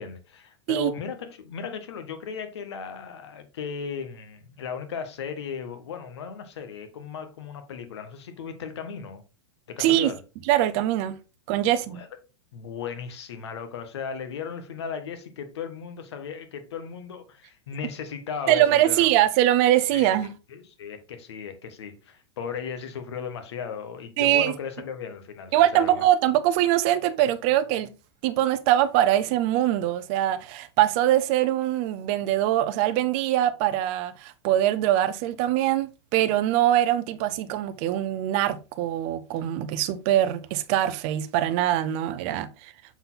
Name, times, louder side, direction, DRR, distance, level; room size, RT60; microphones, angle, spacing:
voice 1, 0.0-9.2 9.7-10.2 11.6-12.1 12.5-19.1 19.9-20.1 20.5-26.0, left 6 dB, 70° left, 1.5 m, -36 dB
voice 2, 9.8-10.1 10.5-11.2 11.5-12.0 18.5-20.3 24.2-24.5 25.5-27.9 28.2-42.7, right 12 dB, 30° right, 0.6 m, -23 dB
7.0 x 4.2 x 3.9 m
supercardioid pair, 175°, 15 cm